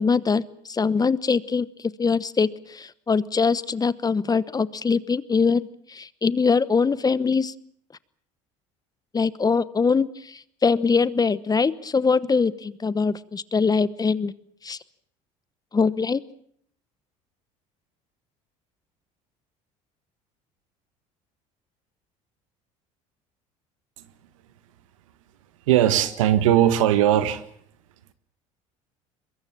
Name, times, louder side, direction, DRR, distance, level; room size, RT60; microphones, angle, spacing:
voice 1, 0.0-1.7 2.0-7.5 9.1-14.3 14.6-14.8 15.7-16.2, left 5 dB, 25° left, 18 dB, 1.0 m, -23 dB
voice 2, 25.7-27.4, right 11 dB, 90° right, 12 dB, 1.6 m, -19 dB
23.0 x 22.0 x 7.5 m, 0.65 s
supercardioid pair, 80°, 16 cm